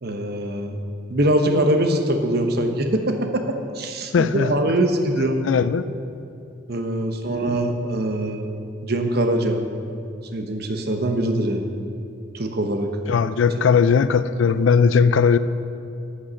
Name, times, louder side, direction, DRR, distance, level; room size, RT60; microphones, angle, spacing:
voice 1, 0.0-0.8 1.1-5.5 6.7-8.4 8.8-9.6 10.3-11.7 12.3-12.9, right 1 dB, 55° right, 5 dB, 0.9 m, -23 dB
voice 2, 4.1-4.6 5.4-5.8 13.1-15.4, left 6 dB, 75° left, 14 dB, 0.4 m, -18 dB
8.6 x 8.0 x 6.2 m, 2.5 s
head